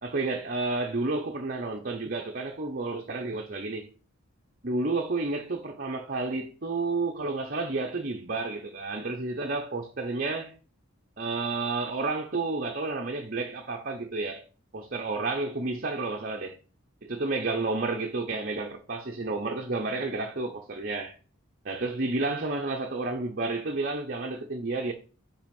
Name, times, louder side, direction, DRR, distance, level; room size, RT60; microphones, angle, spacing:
voice 1, 0.0-3.9 4.6-10.5 11.2-14.4 14.7-16.6 17.0-21.1 21.6-24.9, right 3 dB, 45° right, 0.8 m, -31 dB
6.0 x 4.9 x 5.3 m
head